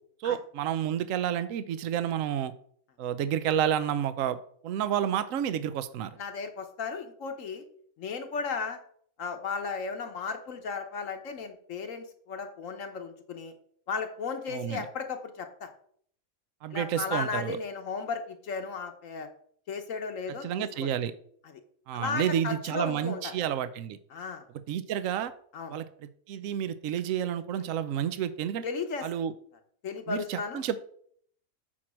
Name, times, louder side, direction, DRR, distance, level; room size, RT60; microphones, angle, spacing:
voice 1, 0.2-2.5 3.0-4.4 4.6-6.2 14.5-14.9 16.6-17.6 20.4-21.1 21.9-24.0 24.7-25.3 25.7-28.6 29.0-29.3 30.1-30.8, right 9 dB, 70° right, 13 dB, 1.0 m, -30 dB
voice 2, 6.2-7.6 8.0-8.8 9.2-13.5 13.9-15.7 16.7-19.3 19.7-20.9 21.4-21.6 21.9-23.3 24.1-24.4 25.5-25.7 28.6-29.1 29.8-30.6, left 5 dB, 65° left, 6 dB, 1.3 m, -35 dB
8.5 x 4.5 x 6.1 m, 0.62 s
omnidirectional pair, 1.5 m